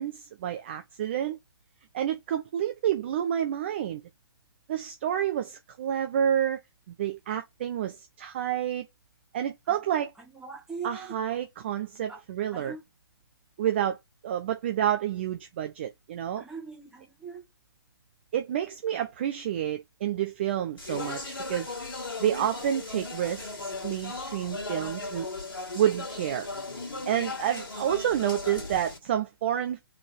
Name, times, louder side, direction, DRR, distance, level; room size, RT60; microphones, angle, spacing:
voice 1, 0.0-1.4 1.9-4.0 4.7-6.6 7.0-8.9 9.3-10.1 10.8-12.8 13.6-14.0 14.2-16.4 18.3-21.7 22.2-25.3 25.7-26.5 27.1-29.9, right 10 dB, 30° right, 0.4 m, -29 dB
voice 2, 10.3-11.1 12.1-12.2 12.5-12.8 16.4-17.4, right 5 dB, 5° right, 1.3 m, -40 dB
Speech, 20.8-29.0, left 3 dB, 60° left, 1.7 m, -37 dB
3.4 x 3.4 x 4.4 m
figure-of-eight pair, 135°, 13 cm